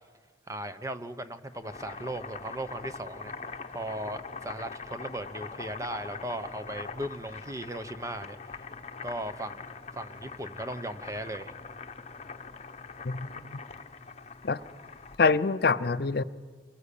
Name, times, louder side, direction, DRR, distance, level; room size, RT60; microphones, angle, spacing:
voice 1, 0.5-3.3 3.7-8.4 9.0-9.7 10.0-11.5, right 1 dB, 15° right, 10 dB, 0.9 m, -37 dB
Boiling, 1.5-15.3, left 4 dB, 35° left, 1.0 m, -43 dB
voice 2, 13.0-13.6 14.4-14.6 15.2-16.2, left 4 dB, 55° left, 14 dB, 0.7 m, -25 dB
23.5 x 22.5 x 8.5 m, 1.5 s
head